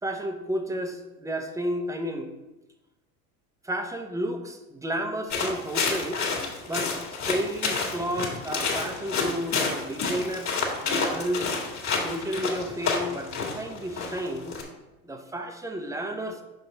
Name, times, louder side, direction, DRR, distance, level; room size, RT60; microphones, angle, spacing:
voice 1, 0.0-2.3 3.6-6.2 6.7-6.9 7.3-11.5 12.0-14.6 15.0-16.4, equal, 5° right, 5 dB, 0.7 m, -32 dB
sound 1, 5.3-14.6, left 4 dB, 40° left, 1.7 m, -29 dB
6.0 x 5.1 x 4.0 m, 1.0 s
supercardioid pair, 100°, 45 cm